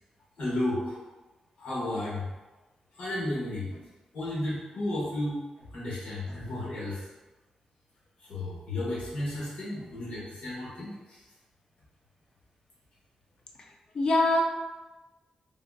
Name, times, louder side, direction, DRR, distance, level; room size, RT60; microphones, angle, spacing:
voice 1, 0.4-1.0 1.6-2.3 2.9-3.8 4.1-7.0 8.2-11.2, left 1 dB, 80° left, -8 dB, 1.0 m, -33 dB
voice 2, 13.6-14.4, left 2 dB, 40° left, 1 dB, 0.4 m, -25 dB
3.5 x 2.3 x 2.2 m, 1.2 s
wide cardioid pair, 165°, 2 cm